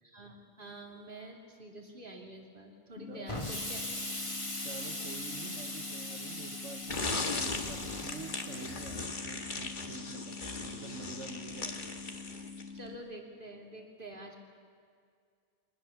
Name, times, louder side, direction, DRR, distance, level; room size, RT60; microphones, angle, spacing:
voice 1, 0.0-4.0 10.0-10.3 12.7-14.4, right 1 dB, 45° right, 1 dB, 2.9 m, -48 dB
sound 1, 3.0-13.0, left 5 dB, 80° left, 1.3 m, -46 dB
Explosion, 3.3-9.1, left 1 dB, 25° left, 2.1 m, -40 dB
voice 2, 4.6-11.8, right 4 dB, 80° right, 4 dB, 1.4 m, -47 dB
sound 2, 6.9-12.8, left 3 dB, 40° left, 1.6 m, -38 dB
24.0 x 19.5 x 7.0 m, 2.2 s
omnidirectional pair, 1.2 m